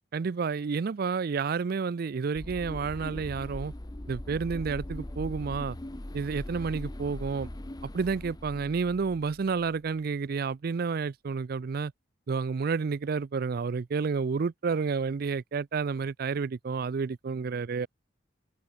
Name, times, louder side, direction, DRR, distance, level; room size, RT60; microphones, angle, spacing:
voice 1, 0.1-3.7 4.1-5.8 6.1-7.5 7.9-11.9 12.3-17.9, right 5 dB, 55° right, 0.4 m, -30 dB
sound 1, 2.4-9.8, left 1 dB, 20° left, 0.9 m, -40 dB
open air
head